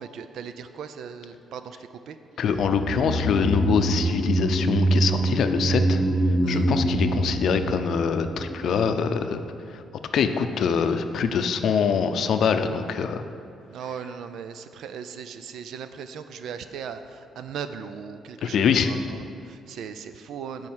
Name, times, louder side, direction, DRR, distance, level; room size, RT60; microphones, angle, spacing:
voice 1, 0.0-1.8 2.1-2.2 6.4-6.7 13.7-20.7, right 7 dB, 75° right, 10 dB, 0.5 m, -38 dB
voice 2, 2.4-6.0 6.5-9.4 9.7-9.8 10.1-13.2 18.4-18.9, left 6 dB, 65° left, 8 dB, 0.5 m, -24 dB
sound 1, 2.5-8.9 9.2-9.3, right 1 dB, 10° right, 1.0 m, -25 dB
7.6 x 4.9 x 7.3 m, 2.5 s
cardioid pair, 90°, 0 cm